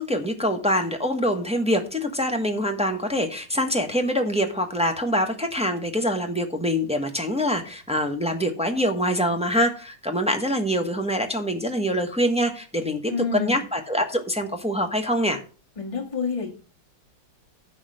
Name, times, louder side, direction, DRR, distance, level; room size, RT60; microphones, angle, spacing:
voice 1, 0.0-15.4, equal, 5° right, 3 dB, 0.9 m, -25 dB
voice 2, 13.1-13.6 15.8-16.5, left 4 dB, 20° left, 1 dB, 1.8 m, -28 dB
10.5 x 4.2 x 7.6 m, 0.37 s
omnidirectional pair, 2.0 m